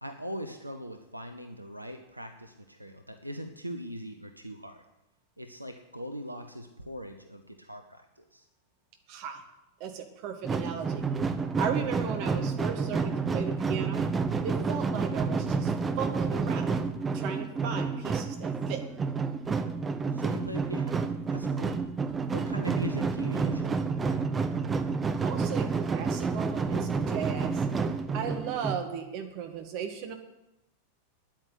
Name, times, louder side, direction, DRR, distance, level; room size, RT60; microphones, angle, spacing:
voice 1, 0.0-4.8 5.4-8.5 20.1-21.0 21.3-21.8 22.3-24.3, equal, 85° right, 6 dB, 0.9 m, -40 dB
voice 2, 9.1-9.4 9.8-11.0 11.6-14.0 14.4-15.7 16.0-16.7 17.1-18.8 25.2-27.6 28.1-30.1, right 7 dB, 45° right, 5 dB, 2.1 m, -36 dB
sound 1, 10.4-28.8, right 4 dB, 15° right, 0.9 m, -29 dB
9.8 x 8.9 x 9.4 m, 0.93 s
figure-of-eight pair, 90°, 0 cm